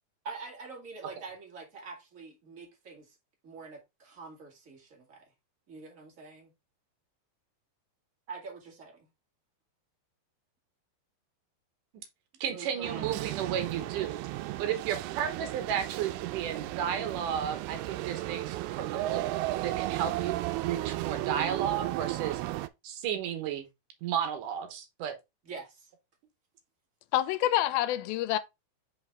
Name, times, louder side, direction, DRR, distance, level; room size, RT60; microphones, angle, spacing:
voice 1, 0.2-3.2 3.4-5.2 5.7-6.5 8.3-9.1 12.5-13.1 25.5-25.9, right 4 dB, 30° right, 1.9 m, -45 dB
voice 2, 12.4-14.2 14.6-19.2 19.6-22.4 22.8-23.7 24.0-25.2, right 9 dB, 70° right, 2.5 m, -33 dB
sound 1, 12.8-22.7, right 17 dB, 90° right, 2.4 m, -34 dB
voice 3, 27.1-28.4, left 14 dB, 85° left, 2.4 m, -27 dB
5.6 x 4.9 x 3.5 m
omnidirectional pair, 4.3 m